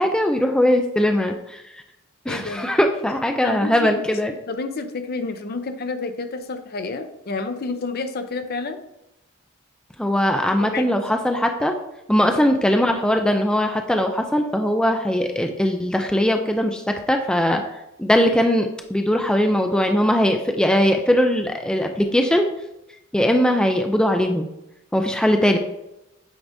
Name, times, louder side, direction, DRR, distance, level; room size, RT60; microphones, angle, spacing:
voice 1, 0.0-1.6 2.3-4.3 10.0-11.7 12.1-17.6 18.0-22.5 23.1-24.5 24.9-25.6, equal, 5° left, 4 dB, 0.4 m, -20 dB
voice 2, 2.3-2.7 3.4-3.9 4.5-8.8 10.6-10.9, left 3 dB, 50° left, 8 dB, 0.6 m, -29 dB
8.6 x 4.7 x 2.6 m, 0.89 s
head